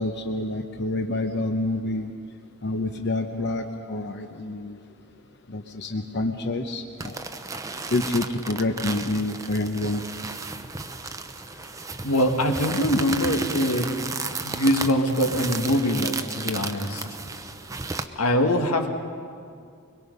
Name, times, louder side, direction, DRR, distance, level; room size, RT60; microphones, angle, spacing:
voice 1, 0.0-2.1 2.6-4.8 5.5-7.2 7.9-10.0, left 2 dB, 50° left, 4 dB, 0.9 m, -28 dB
sound 1, 7.0-18.1, right 3 dB, 15° right, 0.6 m, -34 dB
voice 2, 12.0-14.1 14.4-17.0 18.2-18.9, equal, 85° left, 3 dB, 1.9 m, -23 dB
23.5 x 21.5 x 5.4 m, 2.3 s
head